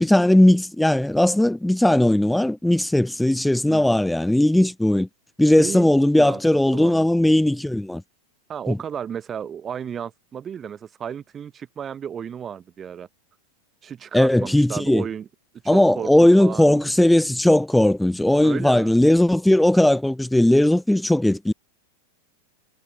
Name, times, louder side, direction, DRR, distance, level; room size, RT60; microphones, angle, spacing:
voice 1, 0.0-5.1 5.4-8.0 8.7-8.8 14.1-15.0 15.7-21.5, left 1 dB, 5° left, 0.3 m, -18 dB
voice 2, 3.7-4.0 5.6-6.4 6.7-7.1 8.5-13.1 13.8-15.3 15.6-16.1 16.4-16.9 18.4-18.9, right 8 dB, 25° right, 1.2 m, -33 dB
figure-of-eight pair, 90°, 0 cm